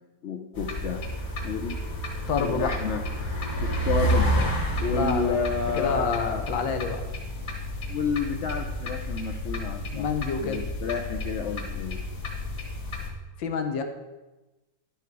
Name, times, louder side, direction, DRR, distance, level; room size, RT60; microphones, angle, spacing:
voice 1, 0.2-1.0 1.4-1.8 2.3-3.0 3.6-4.3 4.8-6.5 7.9-10.1 10.4-12.0, left 5 dB, 65° left, 3 dB, 0.7 m, -30 dB
sound 1, 0.5-13.1, equal, 50° left, 2.0 m, -30 dB
voice 2, 2.3-2.7 4.9-5.4 5.7-7.0 9.9-10.7 13.4-13.8, left 5 dB, 85° left, 6 dB, 1.7 m, -28 dB
11.0 x 6.9 x 4.6 m, 1.1 s
omnidirectional pair, 2.0 m